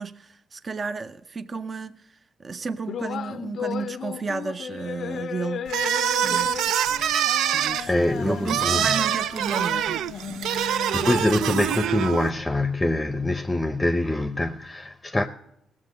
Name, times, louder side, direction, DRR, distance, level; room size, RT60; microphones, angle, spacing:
voice 1, 0.0-2.0 2.4-5.8 6.2-6.5 7.5-10.5, right 4 dB, 35° right, 0.6 m, -33 dB
sound 1, 2.9-11.8, left 8 dB, 60° left, 0.5 m, -35 dB
sound 2, 5.7-12.3, right 10 dB, 80° right, 0.4 m, -25 dB
voice 2, 7.3-9.0 10.5-15.3, left 1 dB, 15° left, 0.7 m, -25 dB
17.5 x 7.5 x 6.2 m
cardioid pair, 90°, 0 cm